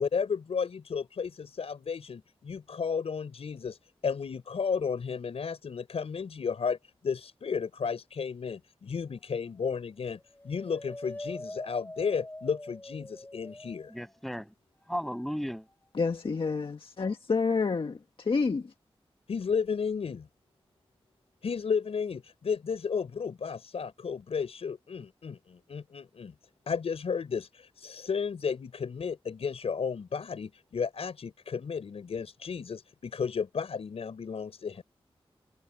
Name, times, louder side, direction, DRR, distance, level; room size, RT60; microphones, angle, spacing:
voice 1, 0.0-6.8 7.0-10.2 10.4-13.9 19.3-20.3 21.4-26.3 26.7-34.8, left 6 dB, 85° left, 5.3 m, -33 dB
sound 1, 9.1-9.7 10.2-14.3 14.8-16.1, left 1 dB, 15° left, 6.1 m, -45 dB
voice 2, 13.9-14.5 14.9-15.7, equal, ahead, 7.7 m, -34 dB
voice 3, 15.9-18.7, left 4 dB, 60° left, 1.5 m, -29 dB
wide cardioid pair, 70°, 10 cm